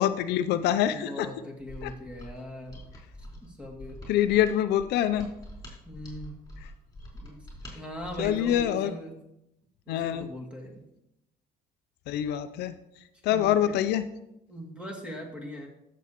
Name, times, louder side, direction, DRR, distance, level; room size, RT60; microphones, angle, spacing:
voice 1, 0.0-1.3 1.8-1.9 4.1-5.3 8.2-8.9 9.9-10.3 12.1-12.8 13.2-14.1, left 11 dB, 80° left, 12 dB, 0.5 m, -25 dB
voice 2, 0.8-2.9 3.4-4.0 5.8-6.3 7.1-7.5 7.7-9.2 9.9-10.8 13.3-13.8 14.5-15.7, equal, 5° right, 0 dB, 2.4 m, -40 dB
Mechanisms, 1.6-8.8, left 1 dB, 20° left, 4.1 m, -46 dB
14.0 x 6.9 x 3.0 m, 0.85 s
cardioid pair, 110°, 17 cm